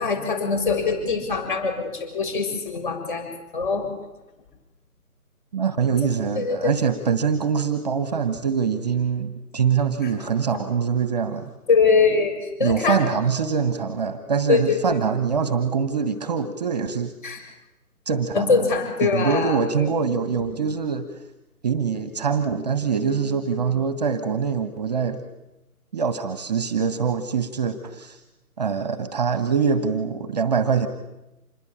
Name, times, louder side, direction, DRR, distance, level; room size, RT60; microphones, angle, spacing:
voice 1, 0.0-3.3 3.5-3.9 6.4-6.7 11.7-13.0 14.5-15.0 17.2-17.4 18.3-19.6, left 4 dB, 35° left, 7 dB, 7.2 m, -22 dB
voice 2, 5.5-11.5 12.6-17.1 18.0-18.7 19.0-21.1 21.6-25.2 25.9-28.2 28.6-30.9, right 6 dB, 25° right, 11 dB, 1.5 m, -24 dB
27.0 x 21.5 x 8.9 m, 0.94 s
figure-of-eight pair, 160°, 45 cm